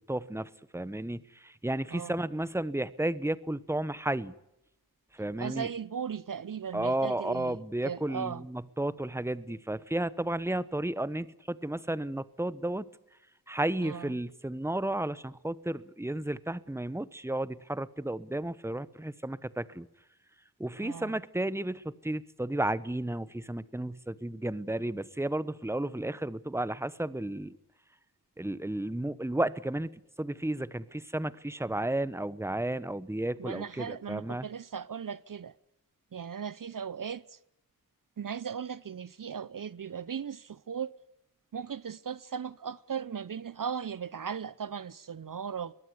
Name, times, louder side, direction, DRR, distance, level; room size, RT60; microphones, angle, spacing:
voice 1, 0.1-4.4 5.1-5.7 6.7-12.9 13.5-19.9 20.6-27.6 28.4-29.9 30.2-34.5, right 1 dB, 5° right, 1.1 m, -33 dB
voice 2, 5.4-8.4 13.8-14.2 20.8-21.2 33.4-35.5 36.1-37.4 38.2-40.9 41.5-45.7, right 7 dB, 60° right, 0.7 m, -37 dB
22.5 x 18.0 x 8.2 m
wide cardioid pair, 55°, 37 cm